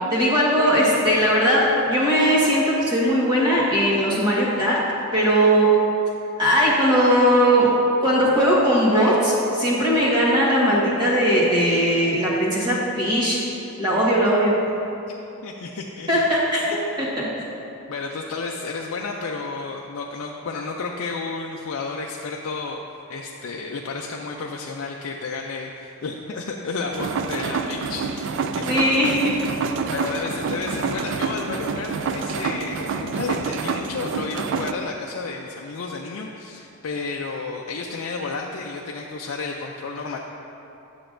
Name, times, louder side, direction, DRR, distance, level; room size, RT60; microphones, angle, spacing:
voice 1, 0.1-4.8 5.1-5.7 6.4-7.7 8.0-13.4 13.8-14.5 16.1-16.6 17.0-17.2 28.7-29.3, equal, 20° right, -7 dB, 1.4 m, -19 dB
voice 2, 15.4-16.1 16.6-16.8 17.9-29.1 29.9-40.2, left 4 dB, 65° left, 0 dB, 0.4 m, -32 dB
sound 1, 26.9-34.7, right 5 dB, 55° right, 0.3 m, -27 dB
10.0 x 6.8 x 2.5 m, 2.9 s
head